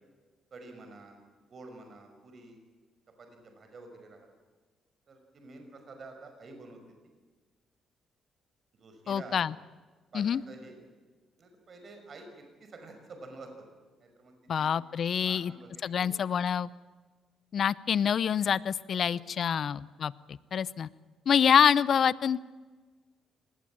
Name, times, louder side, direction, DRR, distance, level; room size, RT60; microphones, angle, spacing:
voice 1, 0.5-1.2 1.5-2.6 3.2-4.3 5.1-6.8 8.8-9.5 10.1-10.8 11.4-13.5 14.0-14.7 15.2-16.1 19.0-19.7, right 3 dB, 50° right, 5 dB, 5.8 m, -49 dB
voice 2, 9.1-9.5 10.1-10.4 14.5-15.5 15.8-16.7 17.5-20.9 21.3-22.4, left 8 dB, 55° left, 19 dB, 0.7 m, -26 dB
25.5 x 19.5 x 8.8 m, 1.3 s
cardioid pair, 90°, 0 cm